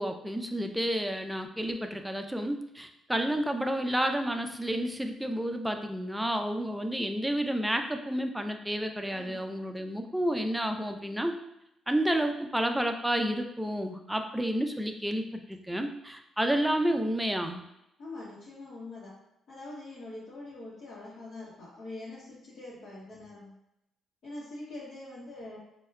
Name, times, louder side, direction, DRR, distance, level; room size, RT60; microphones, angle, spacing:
voice 1, 0.0-11.3 11.9-15.2 15.5-17.6, equal, 5° right, 5 dB, 0.3 m, -30 dB
voice 2, 9.1-9.5 18.0-19.1 19.5-23.6 24.2-25.6, left 2 dB, 65° left, -9 dB, 0.9 m, -44 dB
4.5 x 2.1 x 2.2 m, 0.85 s
cardioid pair, 90°, 0 cm